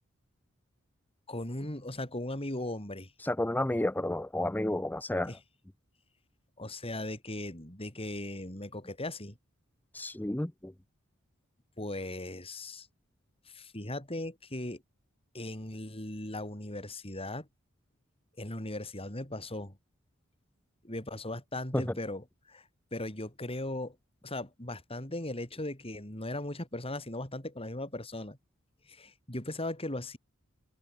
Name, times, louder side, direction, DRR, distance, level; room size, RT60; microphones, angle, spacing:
voice 1, 1.3-3.1 5.2-5.4 6.6-9.3 11.8-12.9 13.5-14.8 15.3-17.5 18.4-19.7 20.8-22.6 22.9-23.9 24.2-28.4 28.9-30.2, left 1 dB, 30° left, 6.8 m, -38 dB
voice 2, 3.2-5.3 9.9-10.7 21.7-21.8, left 1 dB, 10° left, 0.7 m, -31 dB
head